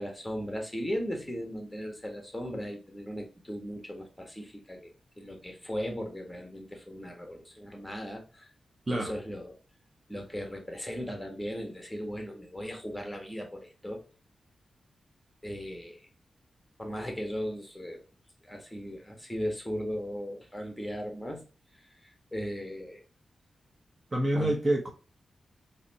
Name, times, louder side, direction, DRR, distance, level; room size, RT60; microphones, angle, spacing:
voice 1, 0.0-4.9 5.2-8.5 8.9-9.6 10.1-14.1 15.4-16.0 16.8-18.0 18.4-21.4 22.0-23.0 24.4-24.6, equal, 5° left, 1.6 m, -37 dB
voice 2, 24.1-24.9, right 1 dB, 35° right, 1.1 m, -27 dB
4.0 x 3.3 x 2.9 m
cardioid pair, 55°, 0 cm